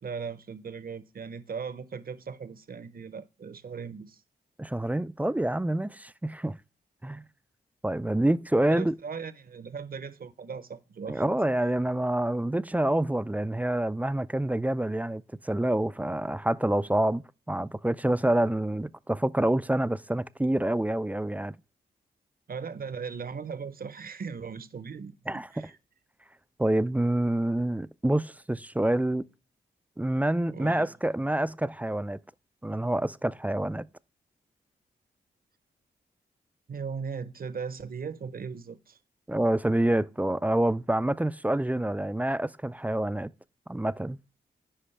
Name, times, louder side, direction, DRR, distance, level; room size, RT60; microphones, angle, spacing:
voice 1, 0.0-4.2 8.7-11.3 22.5-25.1 25.5-25.8 30.5-30.9 36.7-39.0, right 6 dB, 50° right, 0.8 m, -38 dB
voice 2, 4.6-6.6 7.0-7.3 7.8-8.9 11.1-21.5 25.3-25.7 26.6-29.2 30.0-32.2 32.6-33.9 39.3-43.3 43.7-44.2, right 1 dB, 10° right, 0.3 m, -27 dB
10.0 x 5.0 x 3.3 m
supercardioid pair, 45°, 19 cm